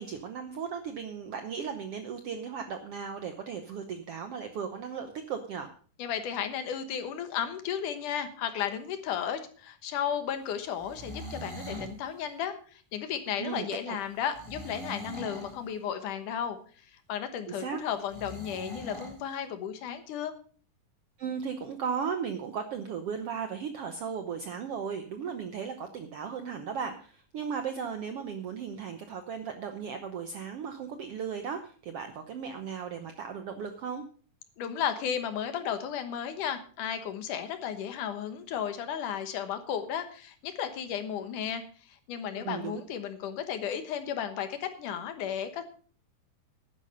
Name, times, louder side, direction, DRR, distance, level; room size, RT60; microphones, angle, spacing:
voice 1, 0.0-5.7 13.4-14.0 17.5-17.8 21.2-34.0 42.3-42.8, right 6 dB, 70° right, 7 dB, 1.4 m, -36 dB
voice 2, 6.0-16.6 16.9-20.3 34.6-41.6 41.9-45.6, left 8 dB, 70° left, 9 dB, 2.7 m, -34 dB
sound 1, 10.7-12.0 14.3-15.6 18.1-19.2, right 1 dB, 10° right, 2.0 m, -41 dB
11.5 x 10.0 x 5.4 m, 0.43 s
omnidirectional pair, 3.8 m